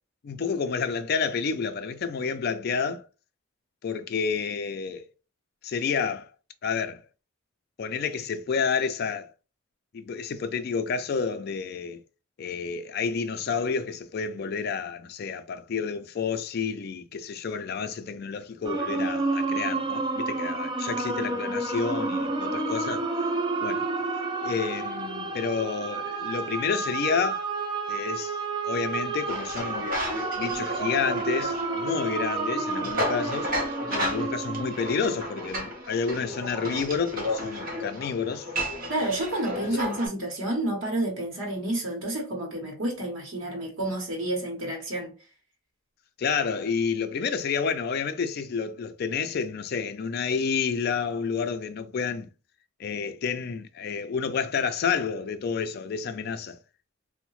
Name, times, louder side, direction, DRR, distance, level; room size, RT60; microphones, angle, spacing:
voice 1, 0.2-3.0 3.8-5.1 5.6-6.3 6.6-7.0 7.8-9.3 9.9-12.0 12.4-23.0 23.6-23.9 24.4-27.5 27.9-28.4 28.6-29.9 30.4-33.5 33.9-38.5 39.7-39.8 46.2-52.3 52.8-56.6, left 5 dB, 50° left, 0.3 m, -29 dB
sound 1, 18.6-36.3, right 3 dB, 25° right, 0.3 m, -30 dB
sound 2, 29.3-40.1, equal, 45° right, 0.8 m, -33 dB
voice 2, 38.9-45.1, right 1 dB, 80° right, 0.9 m, -30 dB
2.7 x 2.1 x 3.0 m
head